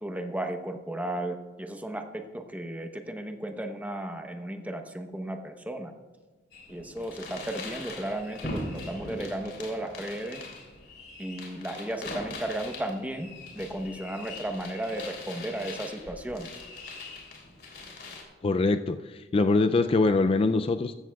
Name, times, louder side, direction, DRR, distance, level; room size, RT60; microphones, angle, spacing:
voice 1, 0.0-5.9 6.7-10.4 11.2-13.3 13.5-16.5, right 1 dB, 10° right, 5 dB, 0.9 m, -34 dB
sound 1, 6.5-18.2, left 2 dB, 60° left, 3.1 m, -41 dB
voice 2, 18.4-20.9, left 3 dB, 30° left, 9 dB, 0.3 m, -23 dB
15.0 x 13.5 x 2.3 m, 1.3 s
head